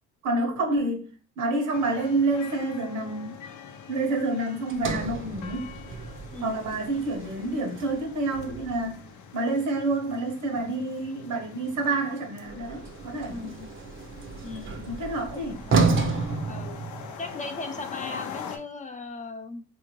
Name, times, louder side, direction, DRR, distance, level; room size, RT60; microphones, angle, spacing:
voice 1, 0.2-1.1 1.4-3.4 3.9-5.8 6.4-9.0 9.3-13.5 14.9-15.7, right 2 dB, 75° right, 1.1 m, -28 dB
sound 1, 1.7-18.6, left 7 dB, 75° left, 0.6 m, -44 dB
Sliding door, 4.7-9.0 12.4-17.4, right 4 dB, 40° right, 0.6 m, -31 dB
voice 2, 6.3-6.7 9.4-9.5 13.3-13.7 14.4-14.9 15.7-15.9 16.5-16.8 17.2-19.6, left 3 dB, 25° left, 0.5 m, -38 dB
3.5 x 2.8 x 3.0 m
cardioid pair, 90°, 30 cm